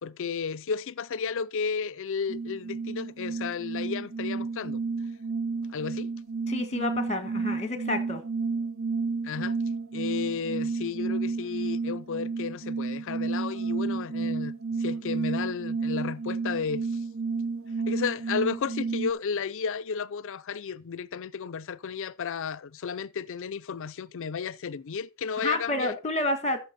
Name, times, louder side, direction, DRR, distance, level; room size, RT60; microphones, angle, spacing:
voice 1, 0.0-4.8 5.7-6.1 9.2-9.6 9.9-14.5 14.8-16.9 17.9-25.9, left 6 dB, 65° left, 0.5 m, -33 dB
sound 1, 2.3-19.1, right 4 dB, 65° right, 1.0 m, -31 dB
voice 2, 6.5-8.2 25.4-26.6, left 2 dB, 30° left, 1.5 m, -29 dB
14.0 x 5.7 x 4.1 m
head